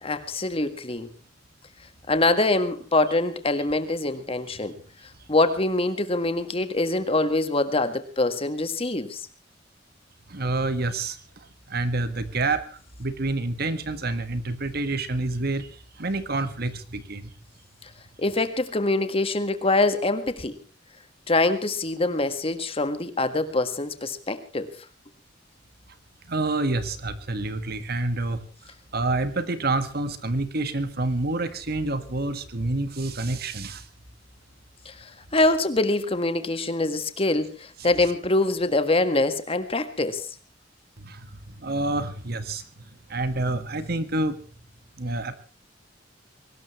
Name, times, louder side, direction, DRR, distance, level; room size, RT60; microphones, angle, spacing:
voice 1, 0.0-1.1 2.1-4.8 5.3-9.3 17.8-17.9 18.2-20.6 21.3-24.7 34.9-40.3, left 2 dB, 30° left, 10 dB, 1.7 m, -24 dB
voice 2, 10.3-11.2 11.7-12.6 13.0-15.7 16.0-17.3 26.3-28.4 28.9-33.8 41.0-41.3 41.6-42.6 43.1-44.4 45.0-45.4, right 2 dB, 55° right, 10 dB, 1.8 m, -27 dB
23.0 x 19.0 x 3.2 m, 0.37 s
head